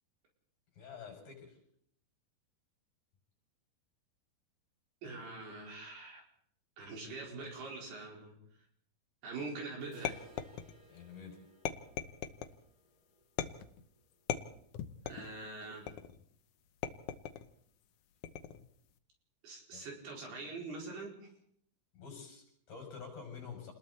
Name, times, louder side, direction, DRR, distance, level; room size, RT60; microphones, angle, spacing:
voice 1, 0.8-1.6 10.9-11.4 19.7-19.9 21.9-23.7, left 6 dB, 55° left, 1 dB, 8.1 m, -48 dB
voice 2, 5.0-6.2 6.8-8.3 9.2-10.2 15.1-15.9 19.4-21.3, right 3 dB, 70° right, -1 dB, 6.6 m, -44 dB
sound 1, 9.9-15.7 16.0-16.1 16.5-16.6 17.1-17.2 18.0-18.1, right 1 dB, 15° right, 3.8 m, -62 dB
sound 2, 10.0-11.0 11.6-12.6 13.4-13.8 14.3-15.3 15.9-16.3 16.8-17.5 18.2-18.7, left 10 dB, 75° left, 1.8 m, -39 dB
29.0 x 20.5 x 4.3 m, 0.66 s
omnidirectional pair, 4.8 m